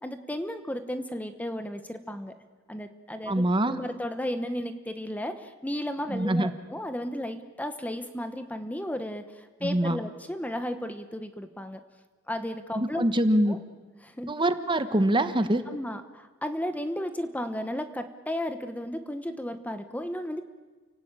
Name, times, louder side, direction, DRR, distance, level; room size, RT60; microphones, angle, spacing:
voice 1, 0.0-2.4 2.7-11.8 12.3-13.0 13.5-13.6 14.0-14.3 15.7-20.4, left 1 dB, 10° left, 9 dB, 1.0 m, -34 dB
voice 2, 3.3-3.8 6.1-6.5 9.6-10.0 12.7-13.6 14.3-15.6, right 1 dB, 25° right, 10 dB, 1.2 m, -24 dB
30.0 x 17.5 x 8.9 m, 1.4 s
head